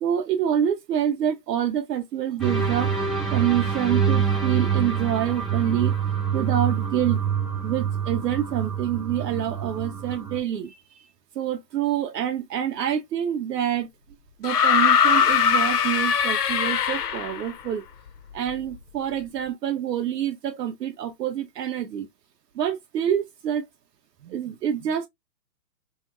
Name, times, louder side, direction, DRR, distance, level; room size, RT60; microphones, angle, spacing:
voice 1, 0.0-2.9 3.3-5.9 6.3-7.2 7.6-10.8 11.4-13.9 14.4-17.8 18.3-22.1 22.6-23.7 24.2-25.1, right 10 dB, 75° right, 0.6 m, -27 dB
sound 1, 2.4-10.4, right 7 dB, ahead, 0.3 m, -26 dB
sound 2, 14.4-17.5 18.7-18.8, left 7 dB, 70° left, 0.6 m, -21 dB
3.0 x 2.8 x 2.3 m
hypercardioid pair, 165°, 50 cm